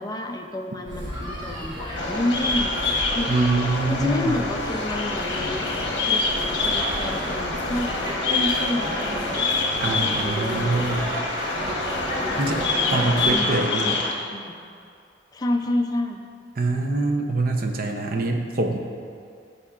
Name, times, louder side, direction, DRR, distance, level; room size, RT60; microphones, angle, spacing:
voice 1, 0.0-2.7 3.1-3.4 3.9-5.6 6.1-6.2 6.6-8.0 8.3-9.4 9.8-11.0 11.6-11.8 12.2-14.0 14.2-14.6 15.3-16.2, left 1 dB, 20° left, 3 dB, 0.4 m, -30 dB
sound 1, 0.9-13.3, equal, 25° right, 1.2 m, -32 dB
Bird vocalization bird call bird song, 2.0-14.1, left 3 dB, 70° left, 0.9 m, -26 dB
voice 2, 3.3-4.4 9.8-11.0 12.4-12.6 12.9-14.0 16.6-18.8, right 2 dB, 50° right, 3 dB, 0.6 m, -24 dB
12.5 x 6.5 x 2.4 m, 2.4 s
head